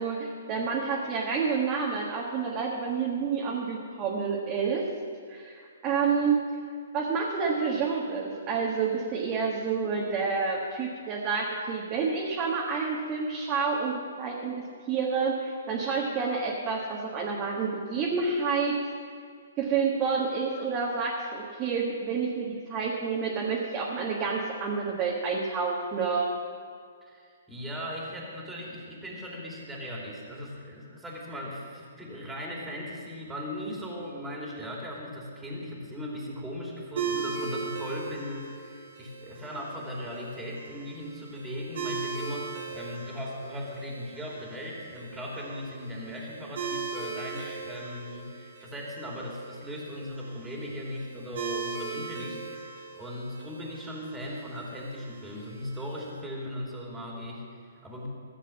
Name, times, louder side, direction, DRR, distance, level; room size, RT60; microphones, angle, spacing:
voice 1, 0.0-4.8 5.3-6.4 6.9-13.9 14.2-18.7 19.6-26.3, right 5 dB, 30° right, -4 dB, 1.6 m, -29 dB
voice 2, 27.0-58.1, equal, 5° right, -3 dB, 2.7 m, -38 dB
sound 1, 37.0-56.1, right 5 dB, 65° right, 2.6 m, -39 dB
14.5 x 7.4 x 7.1 m, 2.1 s
hypercardioid pair, 135°, 0 cm